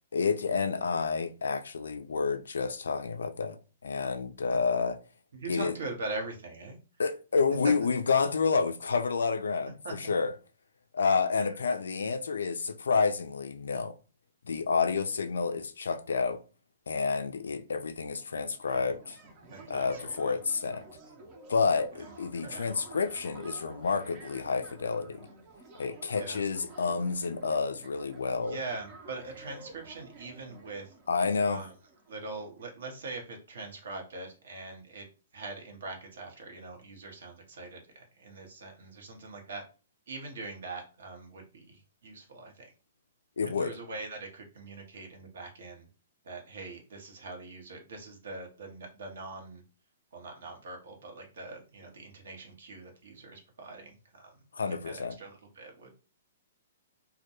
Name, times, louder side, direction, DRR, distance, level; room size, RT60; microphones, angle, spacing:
voice 1, 0.1-3.6 3.8-5.0 5.5-5.7 7.0-10.3 10.9-13.9 14.4-16.4 16.9-19.2 19.7-20.8 21.5-25.3 25.8-28.6 31.1-31.6 43.4-43.7 54.5-55.1, left 5 dB, 75° left, 0.3 m, -29 dB
voice 2, 5.3-6.8 7.6-7.7 9.8-10.1 11.4-11.5 18.7-18.8 19.5-20.4 22.4-22.7 26.1-26.4 28.4-30.9 31.5-31.7 32.1-35.1 35.3-39.6 40.1-42.7 43.6-45.9 46.2-49.6 50.1-54.4 54.7-55.9, right 3 dB, 65° right, 0.8 m, -42 dB
sound 1, 18.1-32.7, right 2 dB, 35° right, 0.6 m, -51 dB
2.2 x 2.2 x 2.8 m
figure-of-eight pair, 115°, 0 cm